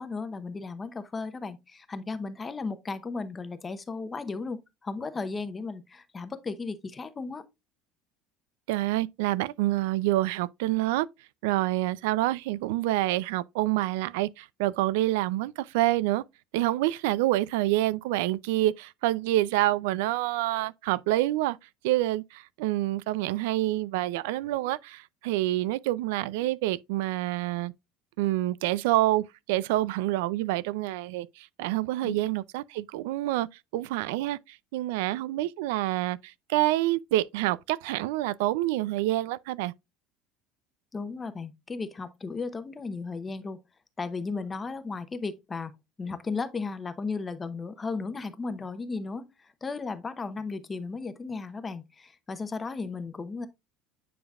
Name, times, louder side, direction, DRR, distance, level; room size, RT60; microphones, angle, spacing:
voice 1, 0.0-7.4 32.0-32.2 40.9-43.6 44.0-45.7 46.0-53.5, left 4 dB, 15° left, 0.8 m, -35 dB
voice 2, 8.7-11.1 11.4-16.2 16.5-21.6 21.8-27.7 28.2-33.5 33.7-39.7, right 16 dB, 90° right, 0.3 m, -27 dB
9.4 x 5.2 x 2.3 m
cardioid pair, 150°, 0 cm